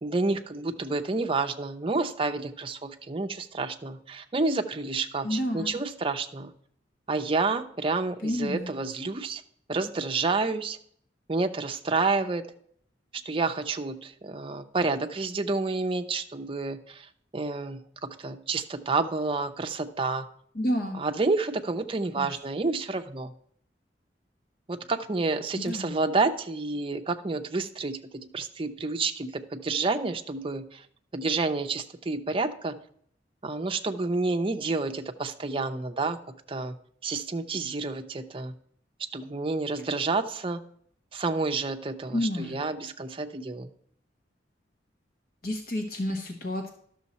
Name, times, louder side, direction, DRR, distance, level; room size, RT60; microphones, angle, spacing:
voice 1, 0.0-6.5 7.1-9.4 9.7-10.8 11.3-12.4 13.2-20.3 21.0-23.3 24.7-30.9 31.1-32.7 33.4-36.2 36.5-36.7 37.0-38.5 39.1-40.6 41.1-43.7, right 3 dB, 30° right, 6 dB, 0.6 m, -29 dB
voice 2, 5.2-5.8 8.2-8.7 20.5-21.0 22.1-22.4 25.6-26.0 42.1-42.6 45.4-46.7, left 1 dB, 55° left, 3 dB, 1.1 m, -30 dB
12.0 x 6.3 x 4.1 m, 0.64 s
head